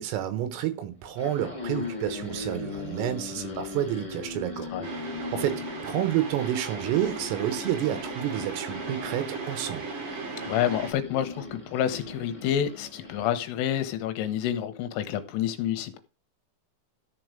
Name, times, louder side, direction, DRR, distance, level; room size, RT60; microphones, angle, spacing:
voice 1, 0.0-4.7 5.2-9.9, right 11 dB, 85° right, 3.9 m, -29 dB
sound 1, 1.0-13.3, left 3 dB, 15° left, 1.1 m, -39 dB
sound 2, 4.8-10.9, right 4 dB, 55° right, 1.6 m, -37 dB
voice 2, 10.5-16.0, left 10 dB, 80° left, 3.3 m, -28 dB
13.5 x 4.6 x 5.1 m
omnidirectional pair, 6.0 m